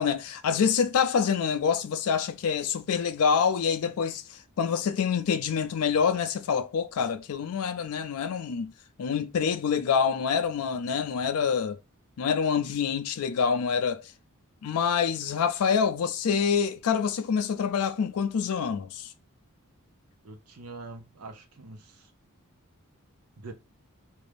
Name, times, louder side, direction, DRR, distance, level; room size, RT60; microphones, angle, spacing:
voice 1, 0.0-8.7 9.0-11.8 12.2-14.1 14.6-19.1, left 6 dB, 80° left, 0.4 m, -26 dB
voice 2, 20.2-22.1 23.4-23.5, right 3 dB, 85° right, 0.7 m, -44 dB
4.7 x 2.6 x 3.3 m
head